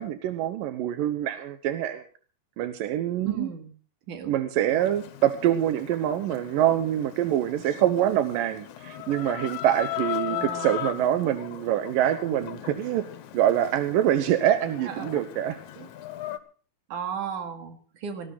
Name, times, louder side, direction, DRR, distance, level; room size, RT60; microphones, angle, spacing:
voice 1, 0.0-2.0 2.6-3.5 4.3-13.1 13.3-15.9, right 11 dB, 90° right, 9 dB, 2.7 m, -25 dB
voice 2, 3.2-3.7 4.1-4.3 10.3-10.8 14.9-15.1 16.9-18.3, right 7 dB, 70° right, 6 dB, 3.5 m, -35 dB
Chicken rooster, 4.7-16.4, left 13 dB, 70° left, 2.3 m, -38 dB
19.0 x 15.0 x 4.1 m, 0.40 s
omnidirectional pair, 3.8 m